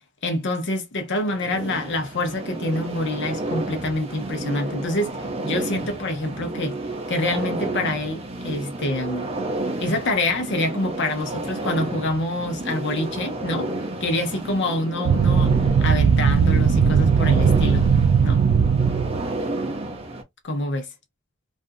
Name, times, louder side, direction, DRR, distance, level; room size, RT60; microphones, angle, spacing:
voice 1, 0.2-6.8 7.1-9.3 9.8-13.7 14.0-17.9 18.2-18.4 20.4-20.9, left 2 dB, 60° left, 0.8 m, -26 dB
sound 1, 1.3-20.2, right 2 dB, 30° right, 0.7 m, -31 dB
sound 2, 15.0-19.3, right 6 dB, 90° right, 0.3 m, -18 dB
2.5 x 2.3 x 2.6 m
head